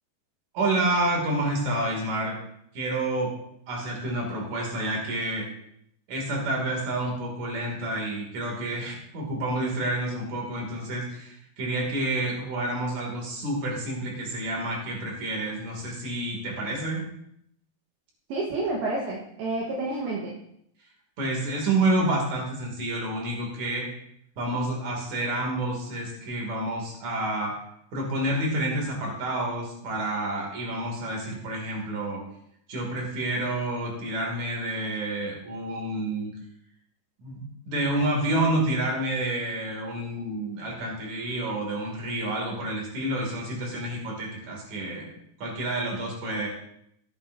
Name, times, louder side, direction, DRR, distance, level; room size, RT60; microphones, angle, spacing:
voice 1, 0.5-2.4 2.7-3.3 3.7-5.5 6.1-17.0 21.2-23.9 24.4-27.5 27.9-32.2 32.7-36.3 37.2-45.1 45.4-46.5, right 1 dB, 45° right, -1 dB, 3.6 m, -29 dB
voice 2, 18.3-20.4, right 2 dB, 65° right, -3 dB, 3.0 m, -29 dB
14.5 x 11.0 x 2.8 m, 0.73 s
omnidirectional pair, 5.3 m